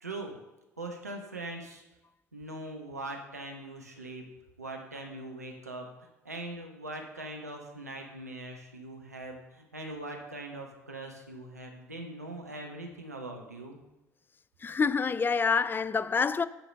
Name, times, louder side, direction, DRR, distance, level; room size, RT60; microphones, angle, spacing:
voice 1, 0.0-0.4 0.8-1.8 2.3-4.2 4.6-5.9 6.2-13.8, right 2 dB, 90° right, 1.0 m, -41 dB
voice 2, 14.6-16.5, left 5 dB, 25° left, 0.4 m, -27 dB
9.1 x 4.9 x 6.7 m
figure-of-eight pair, 55°, 8 cm